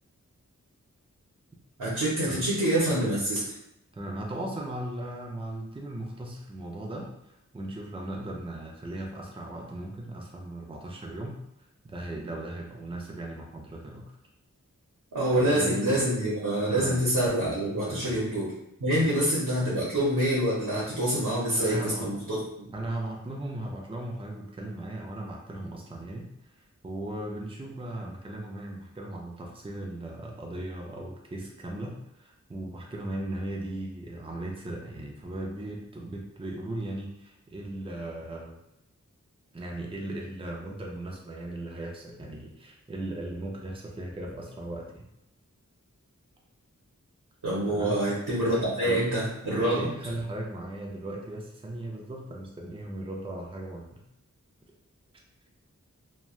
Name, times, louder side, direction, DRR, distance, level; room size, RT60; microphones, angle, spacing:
voice 1, 1.8-3.4 15.1-18.5 18.8-22.7 47.4-49.9, right 1 dB, 90° right, -7 dB, 0.8 m, -26 dB
voice 2, 3.9-11.4 11.8-14.0 15.3-16.1 16.7-17.0 17.8-18.2 19.0-19.1 21.5-22.1 22.7-26.3 26.5-38.6 39.5-45.1 47.7-48.0 48.4-49.1 49.6-54.0, right 1 dB, 15° right, -1 dB, 0.5 m, -37 dB
3.0 x 2.2 x 2.4 m, 0.83 s
wide cardioid pair, 55°, 31 cm